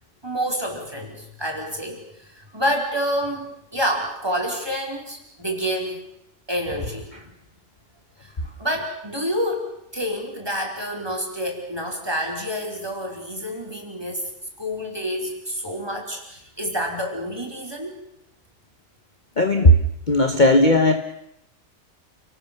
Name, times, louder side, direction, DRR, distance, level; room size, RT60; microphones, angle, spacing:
voice 1, 0.2-6.0 6.5-7.3 8.2-8.3 8.6-9.6 9.9-14.3 14.6-18.0, equal, 15° right, 1 dB, 5.0 m, -28 dB
voice 2, 19.4-19.8 20.1-20.9, left 1 dB, 30° left, 7 dB, 1.4 m, -15 dB
29.0 x 18.5 x 7.1 m, 0.80 s
omnidirectional pair, 1.6 m